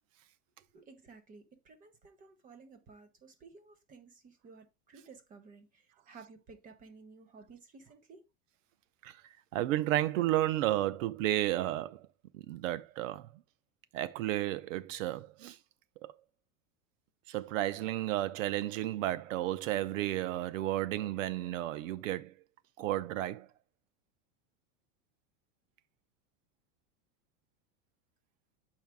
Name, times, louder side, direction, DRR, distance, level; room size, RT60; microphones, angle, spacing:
voice 1, 0.7-8.2, right 4 dB, 20° right, 0.9 m, -55 dB
voice 2, 9.5-12.1 12.3-13.4 13.9-15.6 16.0-16.1 17.3-22.3 22.8-23.5, right 14 dB, 85° right, 0.7 m, -32 dB
7.3 x 4.5 x 3.4 m
supercardioid pair, 160°, 38 cm